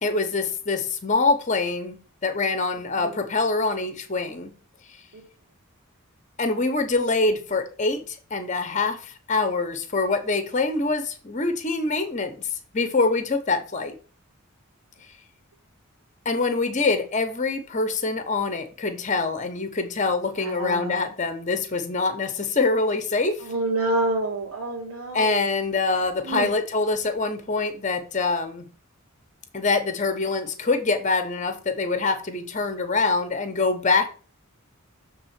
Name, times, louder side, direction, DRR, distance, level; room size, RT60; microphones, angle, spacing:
voice 1, 0.0-4.5 6.4-12.5 12.7-13.9 16.2-23.4 25.1-28.7 29.5-34.1, left 3 dB, 35° left, 9 dB, 1.0 m, -25 dB
voice 2, 20.4-20.9 23.4-25.4 26.2-26.5, right 2 dB, 80° right, -4 dB, 1.8 m, -27 dB
6.8 x 3.7 x 6.0 m, 0.37 s
head